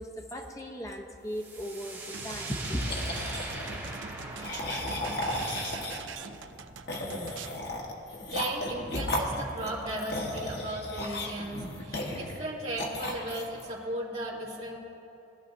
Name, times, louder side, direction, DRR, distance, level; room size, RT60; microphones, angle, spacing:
voice 1, 0.0-2.9, equal, 15° left, 3 dB, 0.9 m, -36 dB
sound 1, 1.3-8.9, right 2 dB, 10° right, 2.2 m, -43 dB
sound 2, 2.1-7.6, right 6 dB, 85° right, 0.5 m, -43 dB
sound 3, 2.8-3.9 4.4-6.2 6.9-12.4 12.8-13.6, left 1 dB, 60° left, 1.4 m, -35 dB
voice 2, 8.1-14.8, right 1 dB, 35° right, -7 dB, 2.4 m, -36 dB
20.0 x 12.5 x 2.7 m, 2.9 s
head